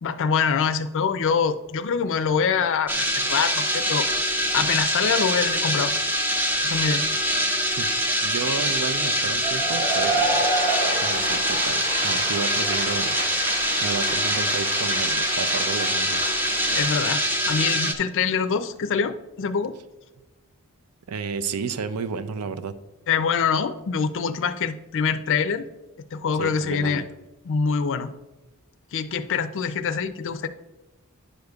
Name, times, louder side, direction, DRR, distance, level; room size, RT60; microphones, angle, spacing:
voice 1, 0.0-4.1 4.5-5.9 6.6-7.0 16.7-19.8 23.1-25.7 26.1-27.0 27.4-28.1 28.9-30.5, left 6 dB, 60° left, 10 dB, 0.4 m, -25 dB
sound 1, 2.9-17.9, equal, 10° right, 0.5 m, -24 dB
voice 2, 8.2-10.5 11.0-13.2 13.8-16.3 21.1-22.7 26.4-27.0, right 5 dB, 80° right, 12 dB, 0.4 m, -32 dB
Cheering / Applause / Crowd, 9.4-17.1, right 2 dB, 35° right, 1.2 m, -29 dB
10.0 x 6.5 x 2.3 m, 1.1 s
head